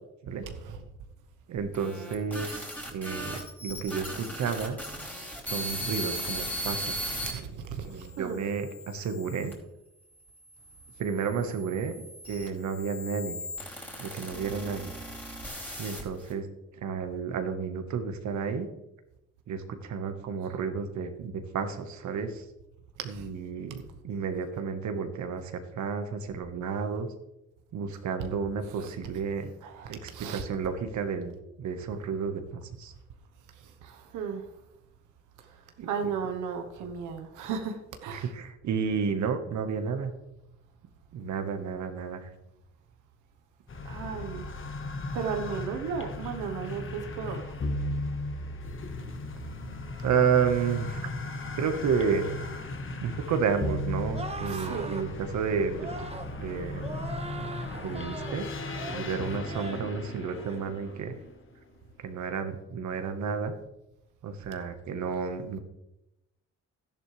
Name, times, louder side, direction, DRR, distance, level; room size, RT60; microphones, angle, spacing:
voice 1, 0.4-0.8 7.2-8.4 23.1-23.3 28.2-28.3 28.8-28.9 29.6-30.4 33.8-34.5 35.8-38.3 43.8-44.5 45.1-47.5 54.5-55.1, right 6 dB, 90° right, 1.2 m, -35 dB
voice 2, 1.5-2.7 2.9-7.1 7.8-9.5 11.0-11.9 12.3-13.4 14.0-14.9 15.8-16.5 16.8-18.7 19.5-22.4 23.0-27.1 27.7-29.5 29.9-32.9 35.8-35.9 38.1-40.1 41.1-42.3 50.0-51.0 51.6-52.4 53.0-55.9 56.4-56.9 57.4-57.5 57.8-58.5 58.9-61.2 62.0-63.5 64.2-65.6, right 6 dB, 70° right, 1.4 m, -31 dB
sound 1, 1.6-7.3 8.0-9.5 10.3-16.3, equal, 5° left, 3.0 m, -38 dB
sound 2, 43.7-61.6, left 2 dB, 40° left, 1.6 m, -36 dB
sound 3, 54.1-55.1 55.8-56.3 56.8-58.4 58.7-59.1 59.4-59.9 60.3-60.6, right 2 dB, 20° right, 1.5 m, -40 dB
12.0 x 10.5 x 3.3 m
cardioid pair, 90°, 30 cm